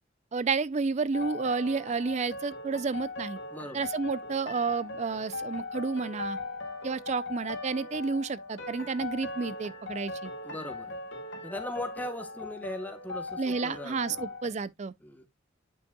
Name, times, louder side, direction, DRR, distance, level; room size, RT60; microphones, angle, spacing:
voice 1, 0.3-3.4 3.7-6.4 6.8-10.3 13.4-14.9, right 4 dB, 35° right, 0.4 m, -31 dB
sound 1, 1.1-14.5, left 3 dB, 65° left, 1.8 m, -39 dB
voice 2, 3.5-3.9 10.4-11.0 11.4-14.3 15.0-15.3, left 1 dB, 10° left, 1.1 m, -39 dB
9.2 x 5.5 x 2.3 m
head